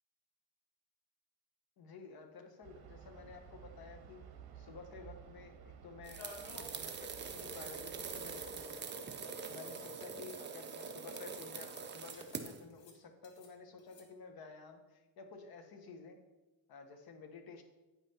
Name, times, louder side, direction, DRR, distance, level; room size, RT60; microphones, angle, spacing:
voice 1, 1.8-4.2 4.5-9.0 9.4-16.2 16.7-17.6, left 4 dB, 50° left, 6 dB, 1.1 m, -52 dB
sound 1, 2.6-8.6, right 7 dB, 55° right, 1.1 m, -55 dB
sound 2, 6.0-12.6, right 5 dB, 25° right, 0.6 m, -44 dB
sound 3, 6.2-6.8 7.2-7.3 7.5-7.6 8.7-8.8 9.5-10.1 11.1-11.3 11.5-11.8 12.1-12.5 12.7-13.5 13.8-14.0, left 2 dB, 70° left, 1.5 m, -55 dB
8.9 x 5.5 x 4.2 m, 1.1 s
cardioid pair, 135°, 45 cm